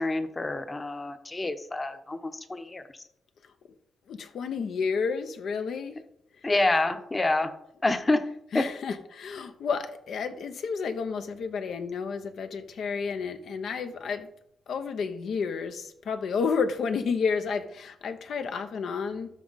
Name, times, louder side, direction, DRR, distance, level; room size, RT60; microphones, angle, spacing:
voice 1, 0.0-2.8 6.4-7.5 7.8-8.3 8.5-8.7, left 2 dB, 25° left, 9 dB, 0.9 m, -27 dB
voice 2, 4.1-6.0 6.4-6.5 8.5-14.3 14.7-19.3, left 5 dB, 75° left, 8 dB, 0.9 m, -31 dB
12.5 x 4.7 x 4.1 m, 0.74 s
cardioid pair, 80°, 0 cm